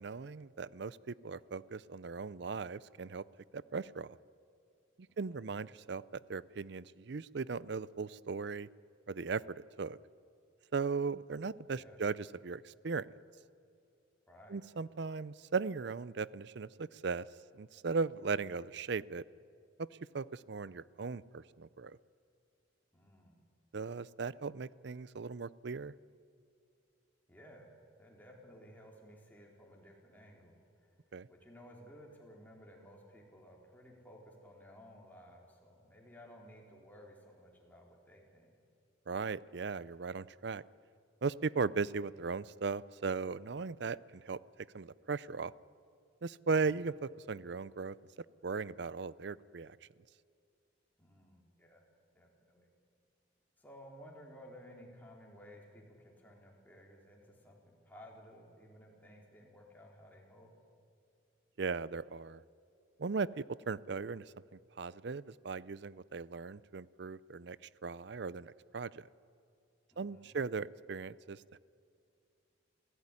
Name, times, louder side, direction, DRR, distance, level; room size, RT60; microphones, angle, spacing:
voice 1, 0.0-3.2 3.5-4.2 5.2-8.7 9.1-10.0 10.7-13.1 14.5-17.3 17.5-19.2 19.8-19.9 20.1-22.0 23.7-25.9 31.1-31.3 39.1-40.6 41.2-44.4 44.7-45.5 46.2-48.0 48.4-49.8 61.6-62.4 63.0-64.3 64.8-67.6 67.8-69.1 70.0-71.6, right 4 dB, 60° right, 20 dB, 0.5 m, -38 dB
voice 2, 5.1-5.5 11.7-12.0 14.3-14.6 22.9-23.4 27.3-27.7 28.0-31.0 31.3-38.5 46.5-46.8 51.0-51.8 52.1-52.7 53.6-60.5 69.9-70.3, equal, 10° left, -1 dB, 4.1 m, -56 dB
27.5 x 16.0 x 9.9 m, 2.4 s
head